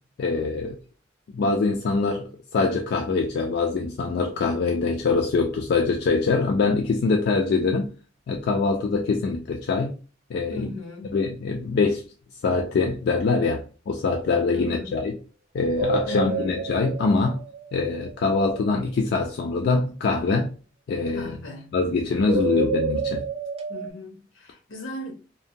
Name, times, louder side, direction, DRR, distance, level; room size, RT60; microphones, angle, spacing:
voice 1, 0.2-0.8 1.3-7.9 8.3-9.9 10.3-10.7 11.1-12.0 12.4-15.2 15.5-17.4 17.7-20.5 20.9-21.3 21.7-23.2, left 4 dB, 55° left, 0.3 m, -24 dB
voice 2, 10.5-11.2 14.5-14.9 16.1-16.6 21.1-21.7 22.1-22.5 23.7-25.1, left 2 dB, 75° left, 0.7 m, -37 dB
sound 1, 15.8-18.2 22.3-23.9, right 3 dB, 30° right, 0.3 m, -28 dB
2.7 x 2.1 x 2.6 m
head